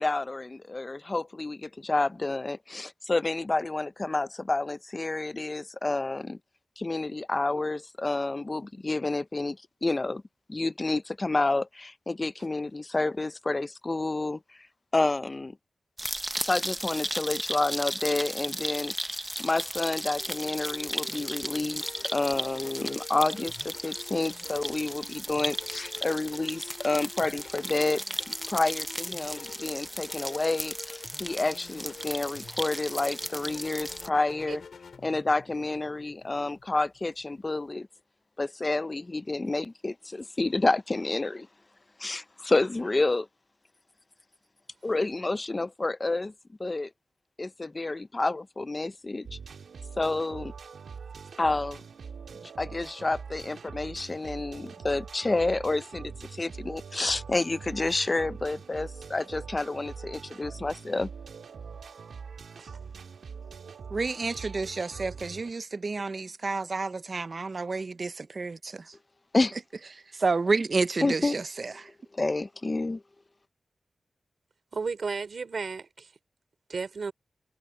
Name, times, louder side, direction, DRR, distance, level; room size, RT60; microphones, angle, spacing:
voice 1, 0.0-6.4 6.8-10.2 10.5-14.4 14.9-15.6 16.4-19.1 19.4-34.6 35.0-37.9 38.4-41.5 42.0-43.3 44.8-46.3 46.6-46.9 47.4-49.3 50.0-50.5 51.4-51.8 52.6-61.1 69.3-69.5 71.0-71.4 72.1-73.0, left 2 dB, 25° left, 0.4 m, -29 dB
sound 1, 16.0-34.1, right 1 dB, 5° right, 0.8 m, -35 dB
sound 2, 19.7-37.7, left 5 dB, 70° left, 4.6 m, -48 dB
sound 3, 49.2-65.5, right 6 dB, 85° right, 2.3 m, -43 dB
voice 2, 63.9-68.8 70.2-71.7, right 3 dB, 40° right, 0.5 m, -30 dB
voice 3, 74.7-76.1 76.7-77.1, right 4 dB, 55° right, 2.9 m, -34 dB
wide cardioid pair, 160°, 0 cm